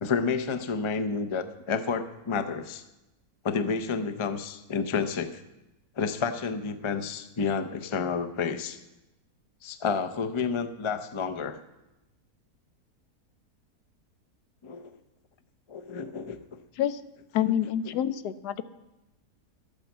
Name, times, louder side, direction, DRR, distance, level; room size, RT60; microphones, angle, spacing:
voice 1, 0.0-2.8 3.4-5.4 6.0-8.8 9.6-11.6 14.6-14.9 15.7-16.6, left 5 dB, 45° left, 8 dB, 0.3 m, -30 dB
voice 2, 17.3-18.6, left 10 dB, 85° left, 13 dB, 1.3 m, -27 dB
12.5 x 8.8 x 7.3 m, 0.97 s
omnidirectional pair, 1.7 m